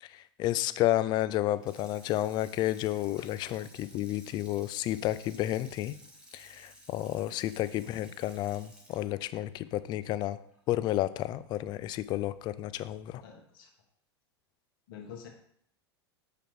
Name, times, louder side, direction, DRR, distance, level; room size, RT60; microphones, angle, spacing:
voice 1, 0.0-6.0 6.3-10.4 10.7-13.2, left 14 dB, 30° left, 15 dB, 0.3 m, -31 dB
Water tap faucet / Sink (filling or washing), 1.4-10.6 11.0-11.1, equal, 5° right, 1.2 m, -55 dB
voice 2, 7.8-8.1 13.2-13.7 14.9-15.3, left 7 dB, 55° left, 2 dB, 1.4 m, -47 dB
7.4 x 4.9 x 3.2 m, 0.68 s
figure-of-eight pair, 85°, 14 cm